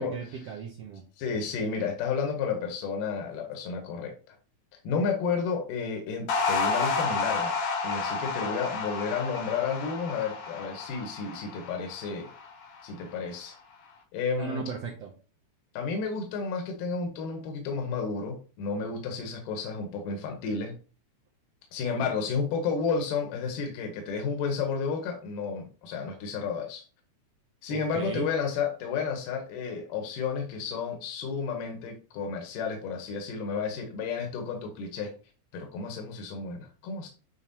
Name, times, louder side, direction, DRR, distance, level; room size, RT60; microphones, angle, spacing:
voice 1, 0.0-1.0 14.4-15.1 27.7-28.3, right 6 dB, 80° right, 1 dB, 1.4 m, -36 dB
voice 2, 1.2-4.4 4.8-7.5 7.8-12.3 12.8-13.6 14.1-14.6 15.7-20.7 21.7-26.8 27.6-35.1 35.5-37.1, left 5 dB, 85° left, 3 dB, 2.6 m, -32 dB
sound 1, 6.3-12.8, left 4 dB, 65° left, 1.5 m, -31 dB
8.9 x 3.9 x 2.8 m, 0.37 s
omnidirectional pair, 3.8 m